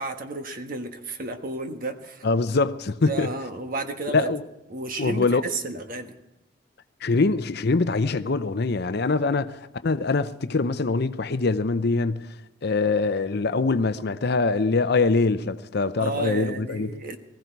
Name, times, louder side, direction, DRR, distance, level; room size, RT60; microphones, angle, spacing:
voice 1, 0.0-2.2 3.1-4.3 4.7-6.1 16.0-17.2, right 2 dB, 45° right, 1.4 m, -32 dB
voice 2, 2.2-3.3 4.1-4.4 5.0-5.4 7.0-12.3 12.6-16.9, left 3 dB, 55° left, 0.6 m, -23 dB
19.5 x 15.0 x 4.7 m
head